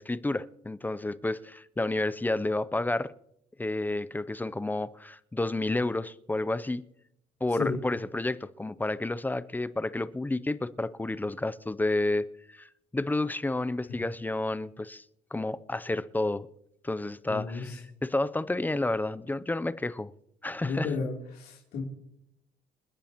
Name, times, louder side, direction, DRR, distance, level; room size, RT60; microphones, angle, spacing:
voice 1, 0.0-3.1 3.6-6.8 7.4-12.7 12.9-15.0 15.3-16.5 16.8-20.1 20.4-20.9, left 2 dB, 10° left, 0.5 m, -30 dB
voice 2, 17.3-17.8 20.6-21.8, left 4 dB, 65° left, 3.1 m, -33 dB
28.0 x 10.5 x 2.9 m
cardioid pair, 110°, 17 cm